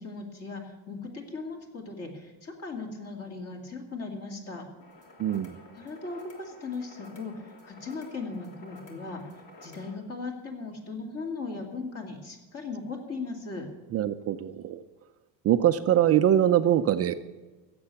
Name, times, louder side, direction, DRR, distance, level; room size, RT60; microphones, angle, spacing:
voice 1, 0.0-4.6 5.7-9.2 9.6-13.7, left 4 dB, 35° left, 3 dB, 2.5 m, -38 dB
sound 1, 4.8-9.9, left 1 dB, 50° left, 3.2 m, -52 dB
voice 2, 5.2-5.6 13.9-14.8 15.4-17.1, right 11 dB, 35° right, 10 dB, 0.5 m, -23 dB
16.5 x 7.8 x 7.0 m, 1.2 s
cardioid pair, 155°, 45 cm